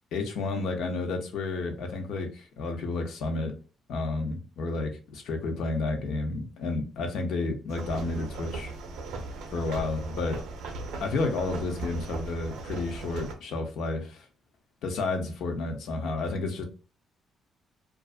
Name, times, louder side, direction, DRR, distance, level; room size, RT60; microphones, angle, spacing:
voice 1, 0.1-3.5 3.9-8.7 9.5-10.4 11.0-14.2 14.8-16.6, left 3 dB, 75° left, 0.6 m, -31 dB
sound 1, 7.7-13.3, right 3 dB, 85° right, 0.5 m, -38 dB
2.5 x 2.3 x 2.4 m
cardioid pair, 90°, 0 cm